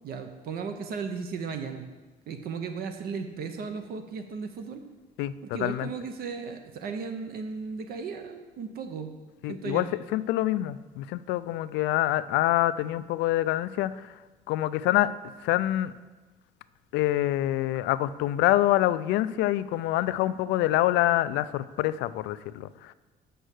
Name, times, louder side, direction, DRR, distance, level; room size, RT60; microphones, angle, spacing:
voice 1, 0.0-1.8 2.3-4.8 5.4-9.1 9.5-9.9, right 5 dB, 60° right, 7 dB, 0.8 m, -35 dB
voice 2, 5.2-5.9 9.4-9.9 10.1-14.2 14.5-15.1 15.4-15.9 16.9-22.9, left 15 dB, 85° left, 15 dB, 0.4 m, -26 dB
7.8 x 5.5 x 6.4 m, 1.2 s
cardioid pair, 125°, 18 cm